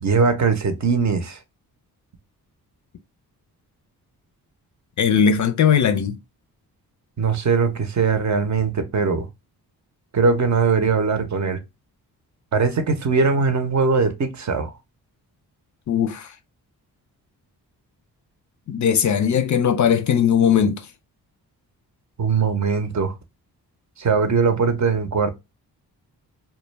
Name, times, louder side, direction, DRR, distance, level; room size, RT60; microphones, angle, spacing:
voice 1, 0.0-1.4 7.2-9.3 10.1-11.6 12.5-14.7 22.2-23.1 24.0-25.3, right 5 dB, 45° right, 0.7 m, -20 dB
voice 2, 5.0-6.2 15.9-16.3 18.7-20.9, left 7 dB, 50° left, 0.4 m, -19 dB
2.2 x 2.2 x 3.1 m
supercardioid pair, 50°, 40 cm